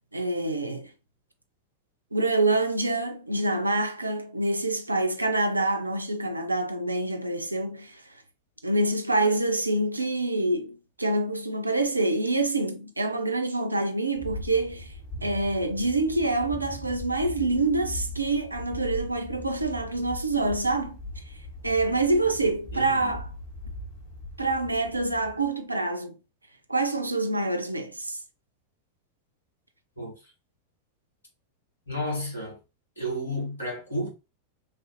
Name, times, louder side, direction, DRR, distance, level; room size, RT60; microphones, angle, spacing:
voice 1, 0.1-0.9 2.1-8.0 8.6-14.9 15.2-21.0 21.6-23.3 24.4-26.2 26.7-28.2, right 2 dB, 85° right, 0.4 m, -26 dB
sound 1, 14.1-25.5, left 1 dB, 50° left, 1.5 m, -40 dB
voice 2, 22.7-23.1 30.0-30.2 31.9-32.6 33.0-34.1, equal, 80° left, 1.8 m, -32 dB
3.1 x 2.4 x 2.8 m
figure-of-eight pair, 90°, 0 cm